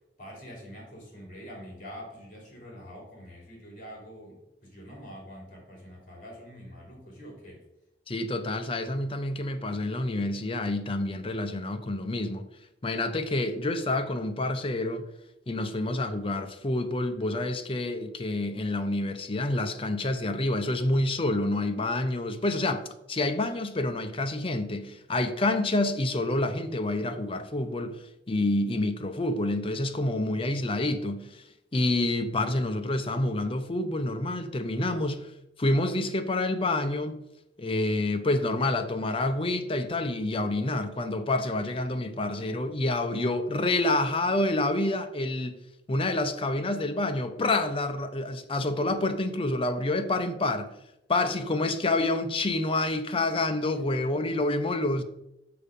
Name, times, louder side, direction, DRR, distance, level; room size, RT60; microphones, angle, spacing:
voice 1, 0.2-7.6, equal, 50° left, 3.0 m, -45 dB
voice 2, 8.1-12.5 12.8-15.1 15.5-31.4 31.7-35.3 35.6-37.2 37.6-45.6 45.9-50.7 51.1-55.0, left 2 dB, 30° left, 0.7 m, -28 dB
6.7 x 5.5 x 5.2 m
head